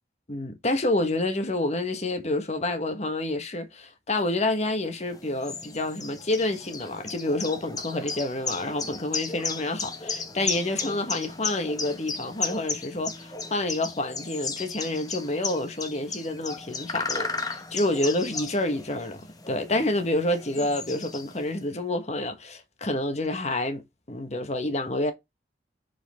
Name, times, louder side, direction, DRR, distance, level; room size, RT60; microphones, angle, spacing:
voice 1, 0.3-25.1, left 2 dB, 40° left, 1.3 m, -28 dB
sound 1, 5.0-21.6, left 4 dB, 20° left, 0.9 m, -35 dB
6.2 x 5.2 x 3.5 m
head